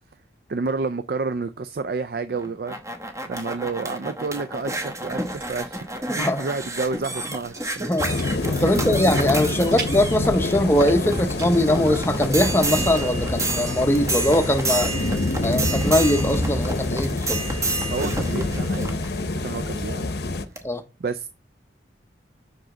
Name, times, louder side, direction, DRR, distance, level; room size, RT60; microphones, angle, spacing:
voice 1, 0.5-2.8 3.2-5.9 6.1-7.7 8.7-8.8 9.5-9.6 17.9-20.1 21.0-21.3, right 4 dB, 55° right, 0.4 m, -30 dB
sound 1, 2.3-20.0 20.6-20.7, right 2 dB, 15° right, 0.9 m, -30 dB
sound 2, 4.7-16.8, right 2 dB, 80° right, 4.4 m, -41 dB
voice 2, 7.8-8.1 8.6-14.9 15.4-17.4 20.6-20.8, left 1 dB, 15° left, 0.7 m, -21 dB
sound 3, 8.0-20.4, left 2 dB, 65° left, 0.7 m, -27 dB
6.1 x 5.0 x 3.7 m
head